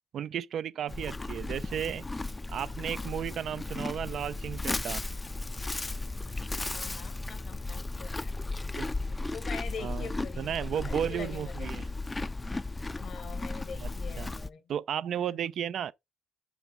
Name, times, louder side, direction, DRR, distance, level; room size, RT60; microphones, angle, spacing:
voice 1, 0.1-2.1 2.5-5.0 8.8-8.9 9.8-10.1 10.4-11.9 13.8-13.9 14.2-14.3 14.7-15.9, right 9 dB, 65° right, 0.4 m, -34 dB
Livestock farm animals working animals, 0.9-14.5, left 2 dB, 20° left, 0.4 m, -35 dB
voice 2, 6.7-8.4 9.3-10.6 10.8-11.7 12.9-14.6 15.1-15.3, left 6 dB, 60° left, 1.0 m, -44 dB
6.0 x 5.1 x 3.6 m
cardioid pair, 90°, 0 cm